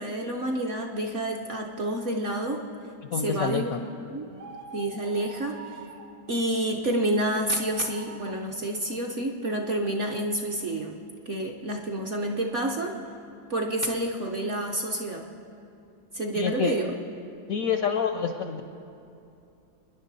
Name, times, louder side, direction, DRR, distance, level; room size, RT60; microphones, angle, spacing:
voice 1, 0.0-2.6 3.1-3.7 4.0-4.3 4.7-5.8 6.3-10.9 11.3-13.0 13.5-15.2 16.1-16.9, right 1 dB, 55° right, 1 dB, 0.9 m, -29 dB
voice 2, 3.1-3.8 16.3-16.8 17.5-18.6, left 7 dB, 70° left, 7 dB, 0.8 m, -27 dB
sound 1, 4.3-6.2 7.5-8.5, right 4 dB, 85° right, 1.7 m, -45 dB
25.0 x 10.5 x 4.1 m, 2.7 s
omnidirectional pair, 2.1 m